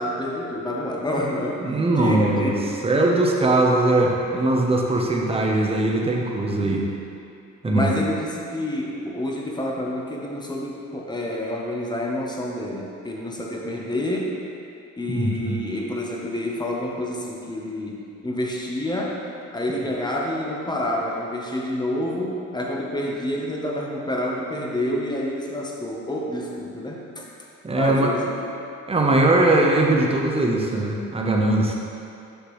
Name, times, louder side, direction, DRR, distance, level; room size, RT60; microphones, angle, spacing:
voice 1, 0.0-1.6 1.9-2.7 3.4-3.5 7.6-14.3 15.0-18.0 18.2-19.2 19.5-27.3 27.7-28.5, left 1 dB, 15° left, -2 dB, 1.0 m, -28 dB
voice 2, 1.6-2.5 2.8-6.8 7.6-7.9 15.1-15.6 27.6-28.1 28.9-31.7, right 2 dB, 20° right, -1 dB, 0.9 m, -20 dB
6.7 x 5.9 x 3.2 m, 2.6 s
cardioid pair, 90°, 30 cm